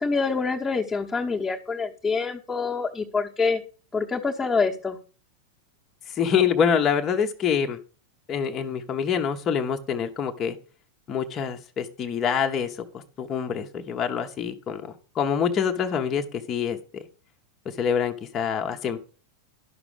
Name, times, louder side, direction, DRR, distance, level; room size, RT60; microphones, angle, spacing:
voice 1, 0.0-3.6 3.9-5.0, left 4 dB, 10° left, -5 dB, 1.1 m, -26 dB
voice 2, 6.2-7.8 8.3-10.6 11.1-14.8 15.1-17.0 17.8-19.0, left 7 dB, 25° left, 4 dB, 0.9 m, -26 dB
11.5 x 6.0 x 4.9 m, 0.37 s
figure-of-eight pair, 90°, 0 cm